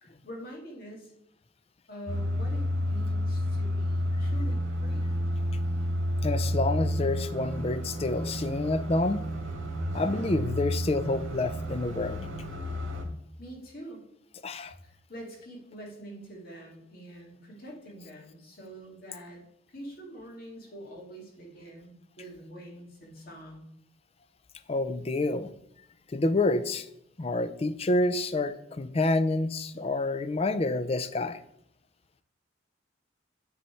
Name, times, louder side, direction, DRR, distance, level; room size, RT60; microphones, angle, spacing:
voice 1, 0.0-1.1 1.9-5.1 13.4-14.1 14.8-23.7, right 1 dB, 45° left, -1 dB, 2.3 m, -45 dB
sound 1, 2.1-13.0, equal, 80° right, 1.7 m, -30 dB
voice 2, 6.2-9.2 9.9-12.3 14.4-14.7 24.7-25.5 26.1-26.9 27.2-31.4, left 2 dB, 30° left, 12 dB, 0.4 m, -28 dB
9.4 x 4.1 x 4.5 m, 0.80 s
head